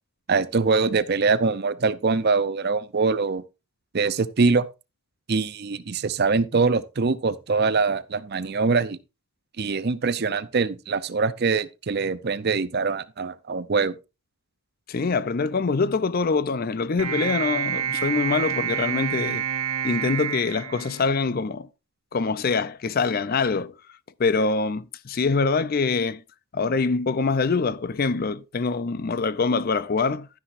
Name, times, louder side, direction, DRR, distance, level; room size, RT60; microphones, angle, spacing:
voice 1, 0.3-3.4 3.9-4.7 5.3-9.0 9.6-13.9, right 4 dB, 45° right, 0.5 m, -23 dB
voice 2, 14.9-19.4 19.8-21.7 22.1-23.7 24.2-26.2 26.5-30.3, left 4 dB, 40° left, 0.4 m, -24 dB
sound 1, 17.0-21.5, right 8 dB, 85° right, 1.2 m, -28 dB
12.0 x 9.9 x 2.5 m
head